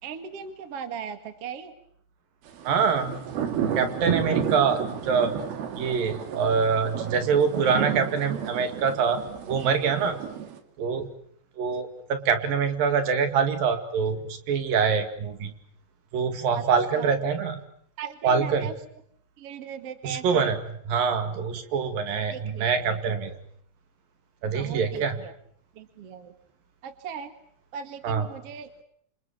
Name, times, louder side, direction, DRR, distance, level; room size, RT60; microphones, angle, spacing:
voice 1, 0.0-1.7 4.3-4.4 16.5-16.6 16.9-17.1 18.0-18.7 19.4-20.6 22.3-23.2 24.5-25.3 25.7-26.3 26.8-27.3 27.7-28.8, right 7 dB, 45° right, 9 dB, 2.6 m, -38 dB
sound 1, 2.5-10.6, right 8 dB, 85° right, 4.2 m, -31 dB
voice 2, 2.7-3.2 3.8-5.3 5.8-9.2 9.5-10.2 10.8-11.1 11.6-15.5 16.1-17.6 18.2-18.7 20.0-20.6 20.9-23.3 24.4-25.2 28.0-28.3, right 6 dB, 70° right, 8 dB, 3.9 m, -25 dB
28.0 x 27.0 x 7.0 m, 0.66 s
omnidirectional pair, 4.3 m